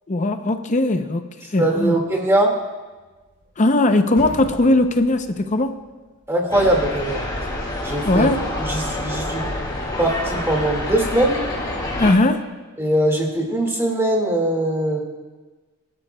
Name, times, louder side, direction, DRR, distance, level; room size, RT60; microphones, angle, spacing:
voice 1, 0.1-2.0 3.6-5.8 8.0-8.5 12.0-12.5, left 2 dB, 35° left, 8 dB, 0.6 m, -19 dB
voice 2, 1.6-2.5 6.3-7.3 7.8-8.3 8.6-9.4 10.0-11.4 12.8-15.0, right 1 dB, 10° right, 0 dB, 1.9 m, -21 dB
sound 1, 2.9-3.8 4.1-6.2, equal, 45° right, 4.2 m, -39 dB
sound 2, 6.5-12.1, left 1 dB, 20° left, 2.5 m, -27 dB
23.0 x 11.5 x 2.2 m, 1.3 s
head